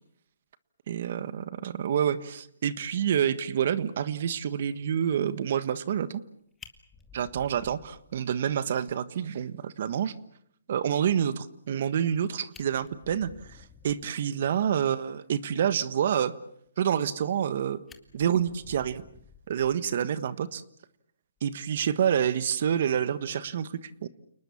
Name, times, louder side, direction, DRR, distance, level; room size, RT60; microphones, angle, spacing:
voice 1, 0.9-6.2 7.1-10.1 10.7-16.3 16.8-17.8 18.1-19.0 19.5-20.6 21.4-24.1, right 9 dB, 50° right, 15 dB, 1.4 m, -28 dB
Fire, 6.3-6.4 6.6-8.5 8.9-9.0 9.4-9.5 9.8-9.9 12.0-12.1 12.4-14.2 17.0-17.5 17.9-20.1 21.4-21.6, left 6 dB, 10° left, 1.9 m, -53 dB
29.5 x 20.0 x 7.3 m, 0.70 s
hypercardioid pair, 155°, 0 cm